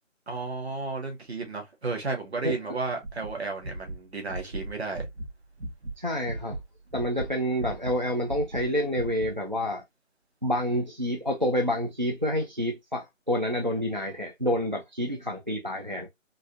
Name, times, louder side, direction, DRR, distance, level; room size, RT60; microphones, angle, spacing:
voice 1, 0.3-5.1, right 3 dB, 55° right, 1.5 m, -33 dB
sound 1, 3.0-6.0 6.2-8.7 8.9-9.3, right 2 dB, 70° right, 1.7 m, -37 dB
voice 2, 6.0-6.6 6.9-9.8 10.4-16.1, equal, 40° right, 0.4 m, -28 dB
3.8 x 2.6 x 2.4 m
figure-of-eight pair, 175°, 39 cm